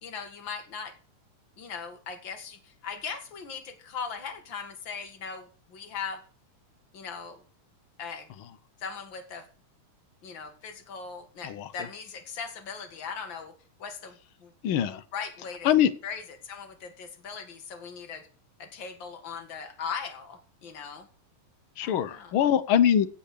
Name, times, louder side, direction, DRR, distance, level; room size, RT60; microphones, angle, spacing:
voice 1, 0.0-0.9 1.6-6.2 6.9-7.4 8.0-8.3 8.8-9.5 10.2-13.5 13.8-14.5 15.1-15.7 16.0-18.3 18.6-21.1 21.8-22.3, left 6 dB, 40° left, 7 dB, 2.5 m, -39 dB
voice 2, 14.6-15.0 15.6-15.9 21.8-23.1, left 9 dB, 75° left, 14 dB, 1.2 m, -23 dB
16.5 x 5.6 x 6.7 m, 0.41 s
omnidirectional pair, 3.5 m